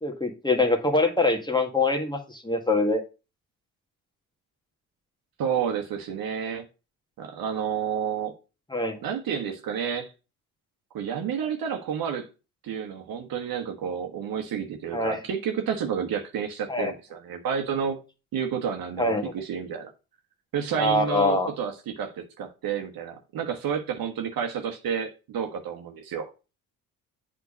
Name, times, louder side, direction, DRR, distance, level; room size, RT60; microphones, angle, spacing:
voice 1, 0.0-3.0 8.7-9.0 14.9-15.2 16.7-16.9 19.0-19.2 20.8-21.5, left 2 dB, 10° left, 1.8 m, -24 dB
voice 2, 5.4-6.7 7.2-8.3 9.0-10.1 10.9-12.3 12.6-18.0 18.3-19.9 20.5-26.2, right 7 dB, 55° right, 1.4 m, -30 dB
8.1 x 3.8 x 5.0 m
hypercardioid pair, 55°, 42 cm